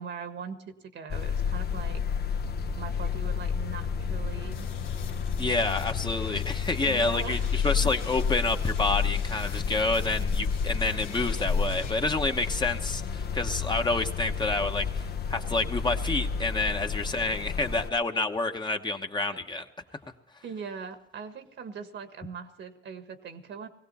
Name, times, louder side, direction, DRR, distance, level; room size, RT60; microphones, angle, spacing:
voice 1, 0.0-2.0 2.7-4.7 6.8-7.9 17.4-17.7 19.3-19.4 19.9-20.0 20.4-23.7, right 6 dB, 65° right, 8 dB, 1.6 m, -41 dB
sound 1, 1.1-17.9, left 6 dB, 55° left, 0.9 m, -30 dB
sound 2, 4.5-11.9, left 7 dB, 80° left, 1.5 m, -45 dB
voice 2, 5.4-19.6, left 3 dB, 20° left, 5 dB, 1.1 m, -28 dB
19.5 x 16.0 x 4.2 m, 0.88 s
cardioid pair, 90°, 20 cm